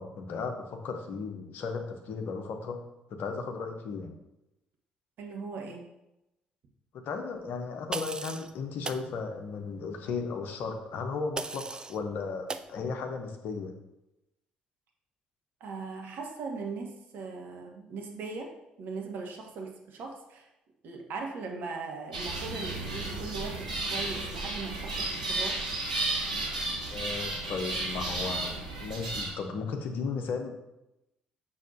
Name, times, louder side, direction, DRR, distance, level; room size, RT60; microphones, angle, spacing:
voice 1, 0.0-2.8 3.1-4.1 6.9-13.7 26.9-28.5 28.8-30.6, left 4 dB, 55° left, 5 dB, 0.8 m, -35 dB
voice 2, 5.2-5.9 15.6-18.5 18.8-20.5 20.8-25.6, right 4 dB, 55° right, 1 dB, 1.1 m, -39 dB
sound 1, 7.9-8.5 8.8-9.1 11.4-12.0 12.5-12.7, right 3 dB, 20° right, 0.4 m, -36 dB
sound 2, 22.1-29.3, right 2 dB, 85° right, 0.7 m, -33 dB
6.3 x 5.6 x 2.7 m, 0.91 s
figure-of-eight pair, 45°, 4 cm